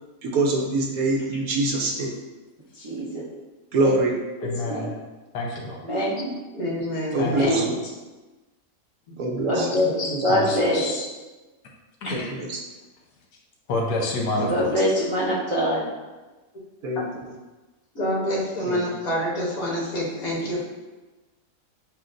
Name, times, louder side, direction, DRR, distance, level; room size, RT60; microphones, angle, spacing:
voice 1, 0.2-2.1 3.7-4.1 7.1-7.6 9.2-9.7 12.1-12.6 14.4-14.7 16.8-17.0 18.7-18.8, right 2 dB, 70° right, 0 dB, 1.1 m, -24 dB
voice 2, 2.7-3.2 3.8-3.9 4.4-4.9 5.8-6.3 7.3-7.7 9.4-10.8 14.5-15.9, equal, 55° right, -8 dB, 0.3 m, -24 dB
voice 3, 4.4-4.9 5.3-5.8 7.1-7.7 10.3-11.1 12.1-12.3 13.7-14.7, left 2 dB, 80° left, -1 dB, 1.4 m, -28 dB
voice 4, 6.5-7.7 9.1-9.2 9.5-9.7 10.1-10.2 17.9-20.7, equal, 60° left, -5 dB, 1.6 m, -28 dB
7.4 x 2.5 x 2.5 m, 1.2 s
omnidirectional pair, 1.7 m